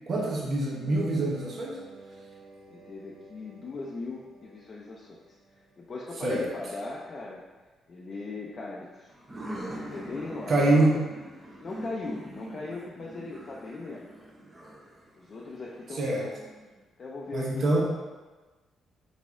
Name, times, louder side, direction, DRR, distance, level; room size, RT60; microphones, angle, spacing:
voice 1, 0.1-1.8 6.2-6.4 10.5-11.0 15.9-16.3 17.3-17.8, right 2 dB, 50° right, -3 dB, 0.9 m, -25 dB
sound 1, 0.8-6.3, right 3 dB, 80° right, 0.8 m, -52 dB
voice 2, 2.7-7.4 7.9-9.1 9.7-10.9 11.6-14.1 15.2-16.4 17.0-17.8, left 3 dB, 45° left, -3 dB, 0.6 m, -39 dB
sound 2, 9.1-16.7, right 1 dB, 20° right, 0.9 m, -43 dB
4.1 x 3.5 x 3.6 m, 1.3 s
cardioid pair, 90°, 0 cm